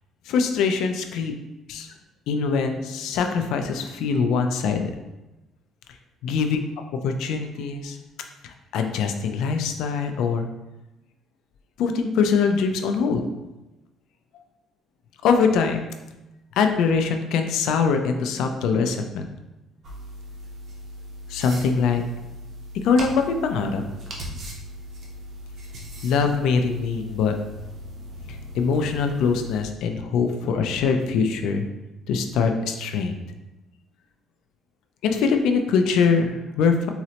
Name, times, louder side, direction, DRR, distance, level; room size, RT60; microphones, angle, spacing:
voice 1, 0.3-1.3 1.7-1.9 2.3-4.9 6.2-6.6 7.0-8.0 8.4-10.5 11.8-13.2 15.2-15.9 16.6-19.3 21.3-22.0 22.8-23.8 26.0-27.4 28.3-31.7 32.1-33.2 35.0-36.9, left 5 dB, 75° left, 5 dB, 0.3 m, -23 dB
sound 1, 19.8-29.6, equal, 40° right, 0.5 m, -39 dB
3.8 x 2.1 x 2.8 m, 1.0 s
cardioid pair, 165°, 0 cm